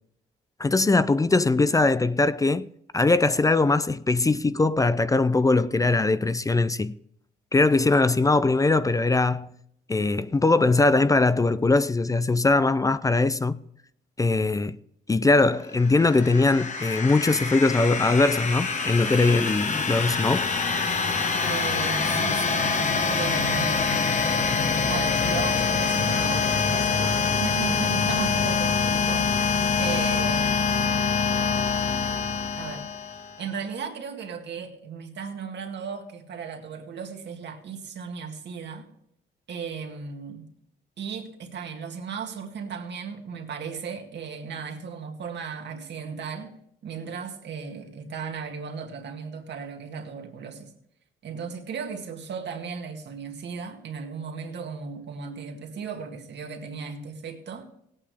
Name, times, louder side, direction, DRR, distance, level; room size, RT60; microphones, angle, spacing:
voice 1, 0.6-2.7 2.9-6.9 7.5-9.5 9.9-13.6 14.2-14.8 15.1-20.5, left 3 dB, 15° left, 0.4 m, -21 dB
sound 1, 15.8-33.4, left 5 dB, 40° left, 1.3 m, -25 dB
voice 2, 21.4-22.7 23.1-24.1 24.9-29.4 29.8-30.6 32.6-38.9 39.5-40.5 41.0-46.6 46.8-50.7 51.2-57.7, right 6 dB, 60° right, 2.0 m, -36 dB
18.0 x 8.6 x 3.4 m
cardioid pair, 90°, 20 cm